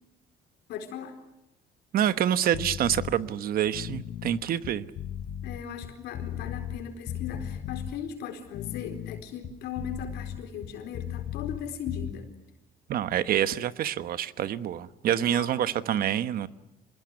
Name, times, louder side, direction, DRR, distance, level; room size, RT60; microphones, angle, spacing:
voice 1, 0.7-1.2 5.4-12.3 15.1-15.7, left 7 dB, 80° left, 5 dB, 4.3 m, -38 dB
voice 2, 1.9-4.8 12.9-16.5, right 10 dB, 60° right, 13 dB, 1.2 m, -27 dB
sound 1, 2.5-3.1 3.6-6.8 7.1-7.9 8.4-11.6 11.9-12.1, left 10 dB, 60° left, 1.5 m, -36 dB
26.0 x 21.0 x 9.7 m, 0.91 s
cardioid pair, 110°, 17 cm